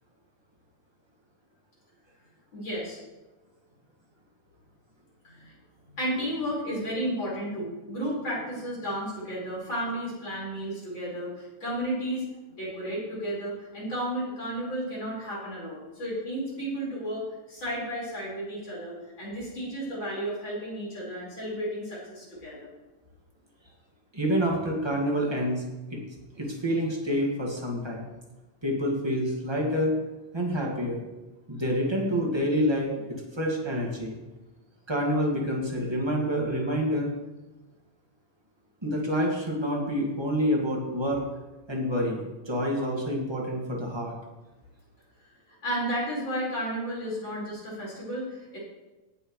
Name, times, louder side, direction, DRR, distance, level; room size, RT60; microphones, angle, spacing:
voice 1, 2.5-3.0 5.2-5.5 6.0-12.2 12.6-17.2 17.5-22.7 45.6-48.6, equal, 35° left, -6 dB, 5.3 m, -33 dB
voice 2, 24.1-25.6 25.9-26.0 26.4-28.0 28.6-30.0 30.3-31.0 31.5-34.1 34.9-37.1 38.8-41.2 41.7-44.1, equal, 15° right, -2 dB, 1.0 m, -27 dB
18.5 x 7.9 x 3.2 m, 1.1 s
omnidirectional pair, 3.9 m